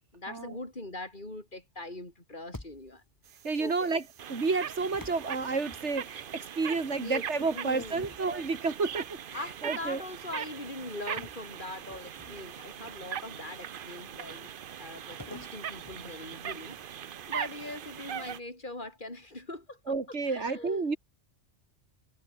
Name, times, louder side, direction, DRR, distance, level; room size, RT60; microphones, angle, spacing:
voice 1, 0.1-3.0 3.6-3.9 6.9-7.2 7.5-8.2 9.3-20.8, left 2 dB, 40° left, 5.4 m, -42 dB
sound 1, 2.5-3.2 4.9-6.3 7.8-9.1 9.6-9.8 11.2-12.7 15.2-16.8, left 1 dB, 15° left, 2.0 m, -49 dB
sound 2, 3.3-18.4, right 9 dB, 55° right, 0.8 m, -41 dB
voice 2, 3.4-4.0 4.3-10.0 19.9-21.0, right 4 dB, 70° right, 2.7 m, -31 dB
omnidirectional pair, 1.2 m